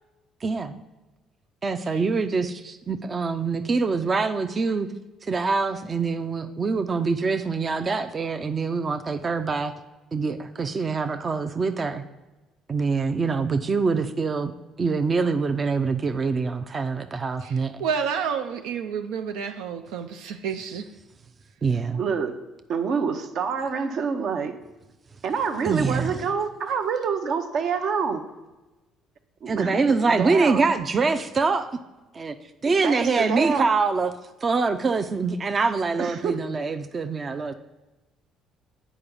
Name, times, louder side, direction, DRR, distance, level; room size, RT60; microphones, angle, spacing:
voice 1, 0.4-0.8 1.6-4.9 5.3-9.7 10.1-12.0 12.7-14.5 14.8-17.7 21.6-22.0 25.6-26.2 29.5-31.7 32.1-32.3 32.6-34.1 34.4-37.5, right 4 dB, 35° right, 7 dB, 0.5 m, -24 dB
voice 2, 17.4-20.9, right 7 dB, 90° right, 6 dB, 0.4 m, -30 dB
voice 3, 21.9-22.3 22.7-24.5 25.2-28.2 29.4-30.6 32.6-33.6 36.0-36.4, right 6 dB, 65° right, 7 dB, 0.8 m, -27 dB
8.5 x 4.9 x 5.3 m, 1.1 s
cardioid pair, 95°, 0 cm